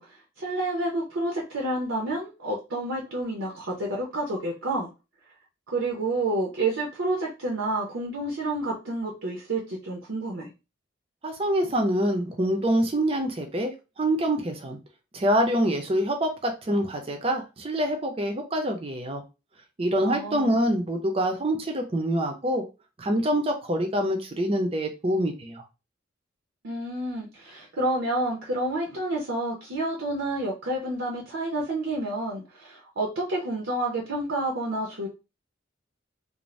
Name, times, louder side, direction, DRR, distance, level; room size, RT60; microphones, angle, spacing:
voice 1, 0.0-4.9 5.7-10.5 20.0-20.5 26.6-35.1, right 2 dB, 75° right, -2 dB, 0.7 m, -29 dB
voice 2, 11.2-14.8 15.1-19.2 19.8-22.6 23.0-25.6, right 1 dB, 30° right, 4 dB, 0.5 m, -25 dB
2.5 x 2.0 x 3.1 m, 0.28 s
head